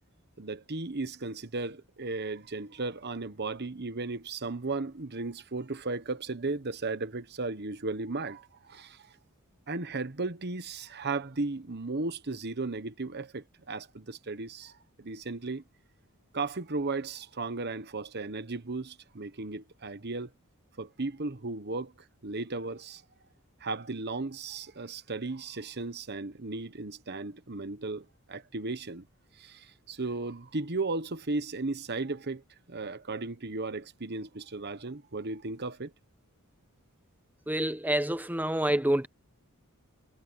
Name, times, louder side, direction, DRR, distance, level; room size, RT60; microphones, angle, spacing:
voice 1, 0.4-9.1 9.7-15.6 16.3-20.3 20.8-21.9 22.2-23.0 23.6-29.1 29.3-32.4 32.7-35.9, right 3 dB, 50° right, 1.2 m, -35 dB
voice 2, 37.5-39.1, right 1 dB, 10° right, 1.1 m, -27 dB
head